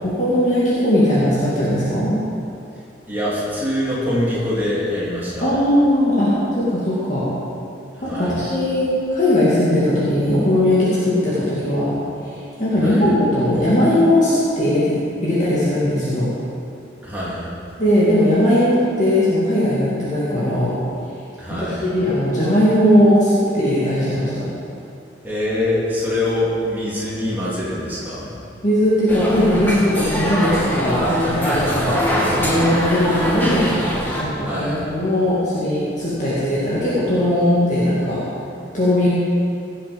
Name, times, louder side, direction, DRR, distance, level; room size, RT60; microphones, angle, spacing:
voice 1, 0.0-2.1 5.4-7.3 8.0-11.9 12.6-15.0 15.2-16.3 17.8-20.7 21.8-24.5 28.6-32.0 32.4-33.8 34.2-38.3 38.7-39.1, left 1 dB, 40° left, -10 dB, 2.5 m, -18 dB
voice 2, 3.1-5.5 8.1-8.4 12.8-13.1 17.0-17.5 21.4-21.9 25.2-28.3 30.9-31.1 31.4-32.1 34.4-34.8, left 1 dB, 10° right, -8 dB, 3.1 m, -24 dB
sound 1, 29.1-34.2, equal, 10° left, 1.7 m, -23 dB
17.0 x 7.3 x 5.3 m, 2.6 s
head